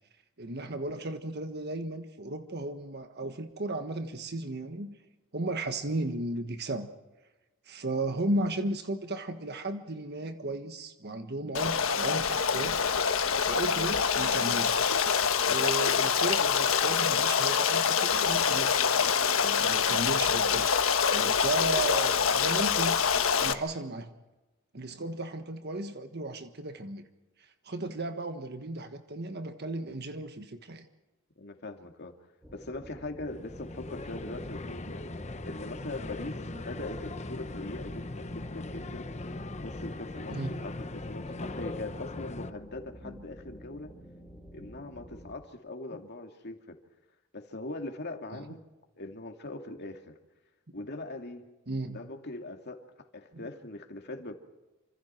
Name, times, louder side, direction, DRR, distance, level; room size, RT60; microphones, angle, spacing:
voice 1, 0.4-5.0 5.3-6.9 7.6-12.8 13.4-14.8 15.4-19.1 19.4-20.8 21.1-23.0 23.4-24.1 24.7-27.1 27.4-30.9 40.3-40.7 43.0-43.2 44.6-44.7 48.3-48.4 51.7-52.0 53.3-53.4, right 2 dB, 55° right, 7 dB, 1.5 m, -35 dB
Stream, 11.5-23.5, left 6 dB, 90° left, 1.3 m, -25 dB
voice 2, 31.4-32.1 32.5-35.0 35.5-39.1 39.6-43.9 44.5-46.8 47.3-48.6 49.0-50.2 50.7-51.5 51.9-52.9 53.1-54.3, left 2 dB, 55° left, 4 dB, 2.5 m, -41 dB
sound 1, 32.4-45.3, equal, 10° right, 5.0 m, -49 dB
sound 2, 33.3-42.5, left 2 dB, 35° left, 0.9 m, -40 dB
28.5 x 26.5 x 4.5 m, 1.1 s
head